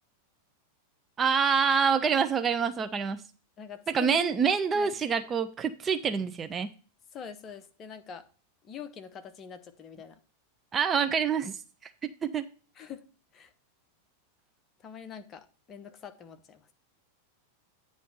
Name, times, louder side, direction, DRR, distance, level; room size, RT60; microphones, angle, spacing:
voice 1, 1.2-3.2 3.9-6.7 10.7-12.4, right 6 dB, 20° right, 0.5 m, -27 dB
voice 2, 3.6-4.5 4.7-4.9 7.1-8.3 8.6-10.2 12.7-13.0 13.3-13.5 14.8-16.7, left 8 dB, 25° left, 0.9 m, -44 dB
9.1 x 3.2 x 6.6 m
figure-of-eight pair, 90°, 0 cm